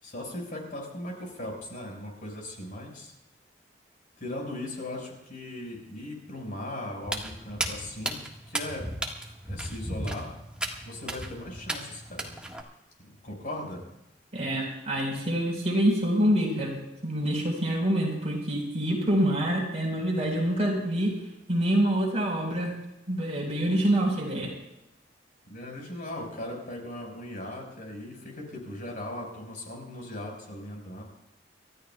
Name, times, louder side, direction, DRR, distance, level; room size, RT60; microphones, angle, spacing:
voice 1, 0.0-3.1 4.2-8.2 8.5-8.9 9.4-10.3 10.8-12.3 13.0-13.8 25.5-31.0, left 1 dB, 50° left, 0 dB, 5.1 m, -38 dB
Walk footsteps, 7.0-12.6, right 1 dB, 5° right, 1.5 m, -35 dB
voice 2, 14.3-16.8 17.0-21.1 21.5-22.7 23.1-24.5, right 1 dB, 40° right, -1 dB, 4.4 m, -26 dB
29.0 x 13.5 x 2.3 m, 0.86 s
head